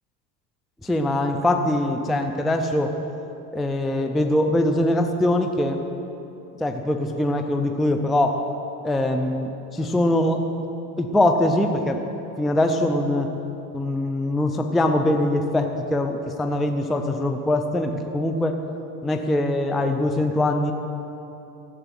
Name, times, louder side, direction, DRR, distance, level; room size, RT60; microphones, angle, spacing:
voice 1, 0.8-3.0 3.5-5.8 6.6-8.4 8.8-10.5 11.0-12.0 12.4-13.3 13.7-18.6 19.0-20.7, left 1 dB, ahead, 5 dB, 0.4 m, -22 dB
15.0 x 8.0 x 9.3 m, 2.9 s
supercardioid pair, 125°, 50 cm